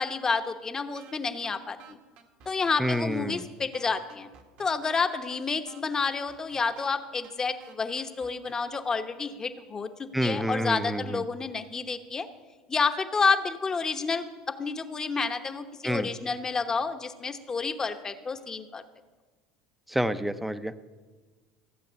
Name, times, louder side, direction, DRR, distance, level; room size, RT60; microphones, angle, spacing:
voice 1, 0.0-2.0 2.5-4.3 4.6-12.3 12.7-18.8, left 4 dB, 25° left, 8 dB, 1.0 m, -29 dB
sound 1, 0.9-1.1 1.4-1.5 1.8-3.1 3.4-3.5 3.7-5.0 5.3-5.4 5.7-6.9 7.2-7.3 7.6-8.5, right 7 dB, 65° right, 1.7 m, -51 dB
voice 2, 2.8-3.4 10.1-11.2 15.8-16.1 19.9-20.8, equal, 5° right, 11 dB, 0.7 m, -28 dB
15.0 x 7.8 x 6.9 m, 1.4 s
supercardioid pair, 90°, 2 cm